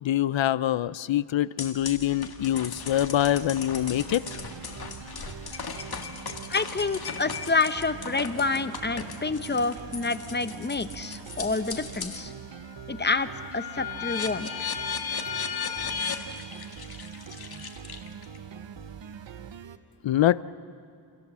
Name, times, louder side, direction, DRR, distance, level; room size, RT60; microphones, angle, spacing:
voice 1, 0.0-4.2 20.0-20.4, left 12 dB, 80° left, 18 dB, 0.7 m, -24 dB
sound 1, 1.6-12.3 12.7-18.4, left 6 dB, 55° left, 1.9 m, -36 dB
sound 2, 3.8-19.8, right 7 dB, 75° right, 1.1 m, -43 dB
voice 2, 6.5-12.3 12.9-13.3 13.5-14.7, left 3 dB, 25° left, 11 dB, 0.8 m, -28 dB
28.5 x 26.0 x 7.5 m, 2.3 s
wide cardioid pair, 165°, 45 cm